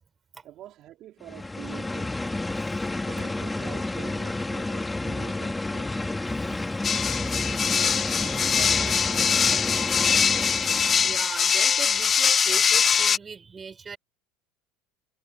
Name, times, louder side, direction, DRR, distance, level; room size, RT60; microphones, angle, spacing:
voice 1, 0.4-2.2 3.0-6.0 8.0-10.1, right 13 dB, 50° right, 3.5 m, -45 dB
sound 1, 1.2-11.2, left 2 dB, 10° left, 3.1 m, -30 dB
voice 2, 6.7-7.1 7.4-7.5 10.3-14.0, right 5 dB, 25° right, 6.6 m, -40 dB
sound 2, 6.8-13.2, left 7 dB, 30° left, 0.7 m, -22 dB
supercardioid pair, 100°, 0 cm